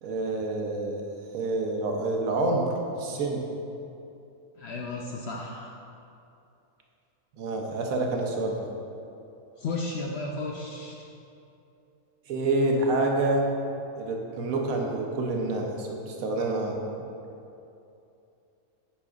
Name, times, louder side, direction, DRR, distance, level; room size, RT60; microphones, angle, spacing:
voice 1, 0.0-1.0 1.3-2.7 3.0-3.4 7.4-8.7 12.3-13.5 14.0-16.8, right 2 dB, 70° right, 1 dB, 1.1 m, -27 dB
voice 2, 4.6-5.7 9.6-11.0, left 3 dB, 65° left, -1 dB, 0.6 m, -33 dB
9.8 x 5.2 x 2.4 m, 2.8 s
omnidirectional pair, 1.5 m